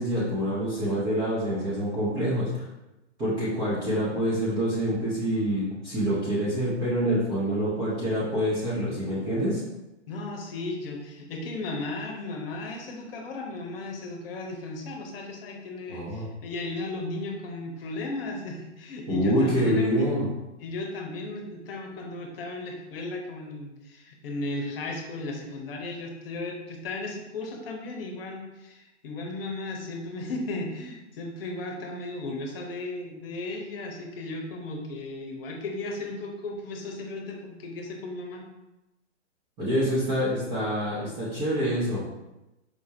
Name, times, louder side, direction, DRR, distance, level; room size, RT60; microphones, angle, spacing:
voice 1, 0.0-2.7 3.2-9.6 15.9-16.3 19.1-20.3 39.6-42.0, equal, 10° right, -9 dB, 0.4 m, -26 dB
voice 2, 10.1-20.1 20.6-38.4, left 2 dB, 50° left, 2 dB, 0.8 m, -35 dB
4.6 x 2.1 x 2.7 m, 0.98 s
hypercardioid pair, 130°, 36 cm